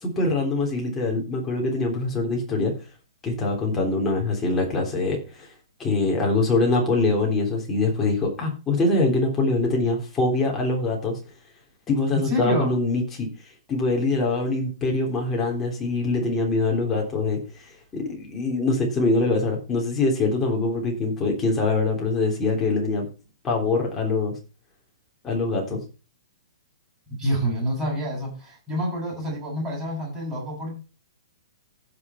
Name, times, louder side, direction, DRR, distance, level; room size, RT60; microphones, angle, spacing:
voice 1, 0.0-2.7 3.2-5.5 5.8-11.2 11.9-13.3 13.7-17.4 17.9-23.1 23.4-24.3 25.2-25.8, left 3 dB, 10° left, -1 dB, 3.4 m, -23 dB
voice 2, 12.2-12.7 27.1-30.7, equal, 10° right, -5 dB, 8.0 m, -27 dB
15.5 x 6.2 x 4.4 m, 0.33 s
hypercardioid pair, 170°, 3 cm